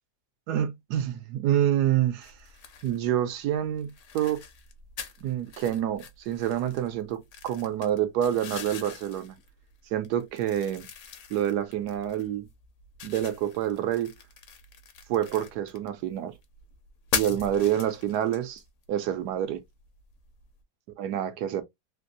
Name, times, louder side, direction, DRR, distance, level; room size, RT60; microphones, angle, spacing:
voice 1, 0.5-2.3 2.8-4.4 5.2-9.4 9.9-10.9 11.3-12.5 13.0-14.1 15.1-16.3 17.1-18.6 18.9-19.6 21.0-21.6, right 11 dB, 85° right, 1.2 m, -27 dB
sound 1, 2.2-20.6, left 7 dB, 60° left, 0.9 m, -41 dB
3.3 x 2.6 x 2.6 m
omnidirectional pair, 1.7 m